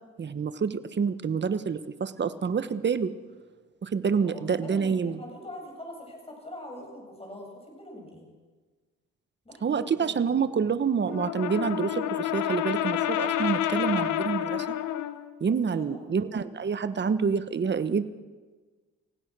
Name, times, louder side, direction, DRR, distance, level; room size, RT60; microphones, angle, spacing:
voice 1, 0.2-3.1 3.8-5.2 9.6-14.7 15.4-18.1, right 6 dB, 35° right, 12 dB, 1.2 m, -27 dB
voice 2, 4.2-8.3 9.4-10.2 15.7-16.1, left 1 dB, 20° left, 1 dB, 7.6 m, -43 dB
Brass instrument, 11.1-15.2, left 11 dB, 90° left, 1.2 m, -29 dB
29.5 x 16.5 x 6.2 m, 1.4 s
cardioid pair, 90°, 30 cm